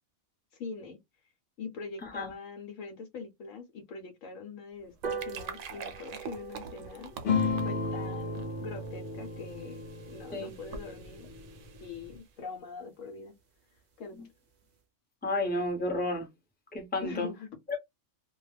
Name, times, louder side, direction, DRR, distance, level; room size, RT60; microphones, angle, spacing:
voice 1, 0.5-1.0 1.6-7.1 7.4-9.8 10.1-11.3 11.8-13.3 14.0-14.3 17.0-17.5, left 4 dB, 75° left, 1.0 m, -43 dB
sound 1, 4.8-12.3, right 6 dB, 75° right, 0.9 m, -47 dB
sound 2, 5.0-11.8 12.2-12.3 12.6-12.7 13.0-13.1 13.4-13.5 13.8-14.1 14.5-14.6, right 5 dB, 50° right, 0.5 m, -45 dB
sound 3, 7.2-12.2, left 4 dB, 50° left, 0.7 m, -34 dB
voice 2, 15.2-16.3 16.7-17.3 17.7-17.8, left 2 dB, 10° left, 0.8 m, -31 dB
2.3 x 2.2 x 3.1 m
omnidirectional pair, 1.4 m